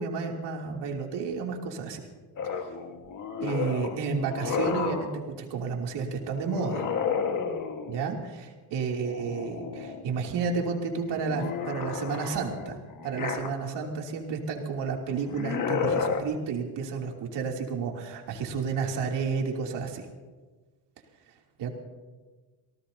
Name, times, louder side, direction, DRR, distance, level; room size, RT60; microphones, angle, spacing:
voice 1, 0.0-2.0 3.4-5.1 5.4-6.8 7.9-12.8 13.0-20.0 21.6-21.7, right 5 dB, 70° right, 1 dB, 3.0 m, -31 dB
sound 1, 2.4-5.2 6.5-8.1 9.0-10.0 10.4-13.9 15.2-16.2, left 6 dB, 45° left, 1.6 m, -32 dB
27.0 x 18.5 x 2.8 m, 1.3 s
cardioid pair, 145°, 44 cm